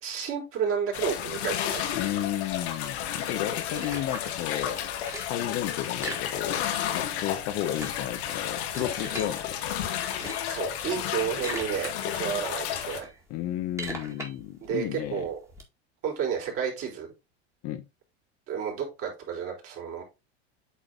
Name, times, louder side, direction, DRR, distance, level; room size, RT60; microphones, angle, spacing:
voice 1, 0.0-1.8 10.4-13.1 14.6-15.4 16.0-17.1 18.5-20.0, right 7 dB, 45° right, 3.5 m, -31 dB
sound 1, 0.9-13.0, left 10 dB, 80° left, 1.6 m, -32 dB
voice 2, 1.9-4.8 5.3-6.7 6.9-9.6 13.3-15.3 17.6-17.8, left 12 dB, 50° left, 0.9 m, -33 dB
sound 2, 2.5-4.5 4.8-5.4 5.9-6.9 7.1-7.2 7.5-9.3 10.0-10.6 11.1-11.9 12.3-15.6, right 1 dB, 10° right, 1.9 m, -40 dB
8.3 x 3.8 x 3.7 m
supercardioid pair, 120°, 32 cm